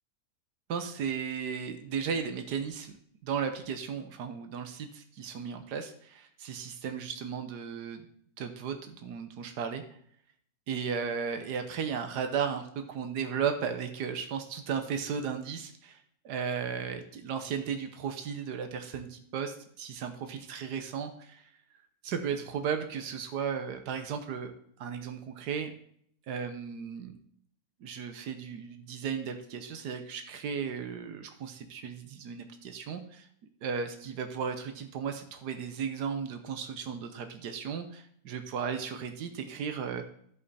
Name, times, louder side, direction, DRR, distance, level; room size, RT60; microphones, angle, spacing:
voice 1, 0.7-2.9 3.2-8.1 8.4-9.8 10.7-21.5 22.0-25.7 26.3-27.2 27.8-33.3 33.6-40.0, right 6 dB, 85° right, 7 dB, 1.5 m, -35 dB
14.0 x 5.3 x 4.2 m, 0.64 s
omnidirectional pair, 1.7 m